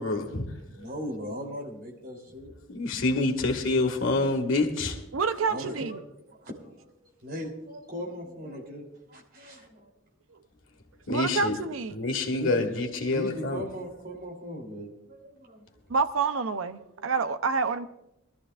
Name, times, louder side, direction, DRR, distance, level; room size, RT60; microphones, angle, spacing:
voice 1, 0.0-0.5 2.7-5.0 11.1-11.6 11.9-13.6, left 2 dB, 75° left, 3 dB, 1.8 m, -27 dB
voice 2, 0.6-2.5 5.5-6.0 6.3-9.9 12.3-12.7 13.1-15.6, equal, 50° right, 0 dB, 3.3 m, -38 dB
voice 3, 5.1-6.0 11.1-12.0 15.9-17.9, right 4 dB, 85° right, 11 dB, 0.6 m, -28 dB
23.0 x 13.5 x 2.5 m, 0.85 s
head